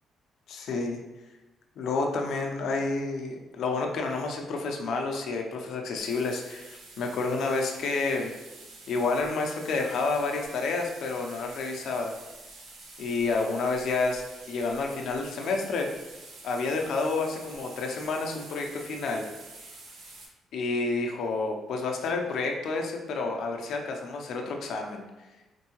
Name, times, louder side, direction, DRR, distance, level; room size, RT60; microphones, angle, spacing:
voice 1, 0.5-1.0 1.8-8.3 8.9-12.1 13.0-14.2 14.5-15.9 16.4-19.2 20.5-25.0, left 3 dB, 75° left, 2 dB, 0.5 m, -29 dB
sound 1, 6.0-20.2, right 3 dB, 80° right, 0.8 m, -48 dB
4.5 x 2.6 x 2.9 m, 1.1 s
cardioid pair, 90°, 0 cm